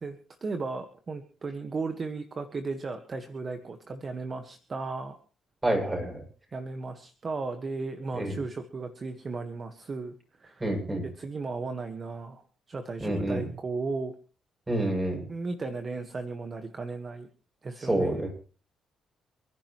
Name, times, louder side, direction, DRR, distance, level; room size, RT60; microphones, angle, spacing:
voice 1, 0.0-5.2 6.5-10.6 11.2-12.4 12.7-14.1 15.3-17.3 17.6-18.2, right 3 dB, 40° right, 8 dB, 1.6 m, -35 dB
voice 2, 5.6-6.2 8.1-8.4 10.6-11.0 13.0-13.4 14.7-15.2 17.8-18.3, right 1 dB, 15° right, 1 dB, 7.5 m, -28 dB
29.0 x 10.5 x 3.2 m, 0.38 s
cardioid pair, 90°, 0 cm